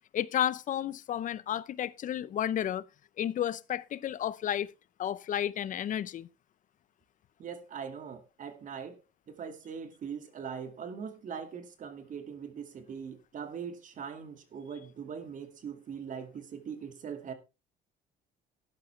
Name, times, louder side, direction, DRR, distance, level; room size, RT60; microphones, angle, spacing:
voice 1, 0.1-2.8 3.2-4.7 5.0-6.3, left 10 dB, 50° left, 0.7 m, -32 dB
voice 2, 7.4-9.0 9.3-17.3, right 7 dB, 50° right, 2.2 m, -41 dB
12.5 x 10.5 x 3.3 m
cardioid pair, 110°, 17 cm